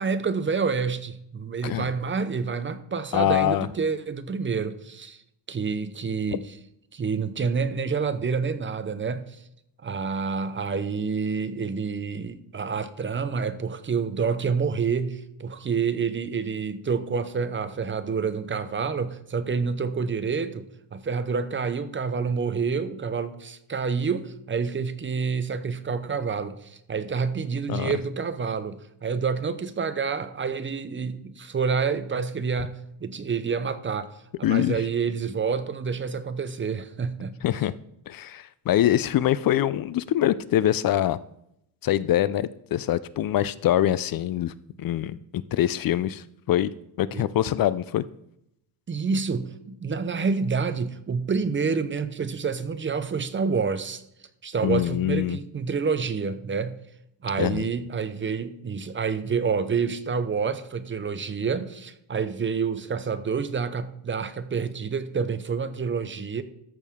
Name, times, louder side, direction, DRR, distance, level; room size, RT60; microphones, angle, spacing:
voice 1, 0.0-5.2 5.5-6.6 6.9-9.4 9.8-34.1 34.4-37.4 47.1-47.3 48.9-54.0 54.4-56.8 57.2-66.4, right 5 dB, 30° right, 12 dB, 0.7 m, -28 dB
voice 2, 3.1-3.7 27.7-27.9 34.4-34.8 37.4-37.7 38.1-41.2 41.8-44.5 44.8-46.7 47.0-48.0 54.6-55.4 57.4-57.6, left 12 dB, 55° left, 17 dB, 0.5 m, -24 dB
13.5 x 6.5 x 3.6 m, 0.77 s
cardioid pair, 130°, 43 cm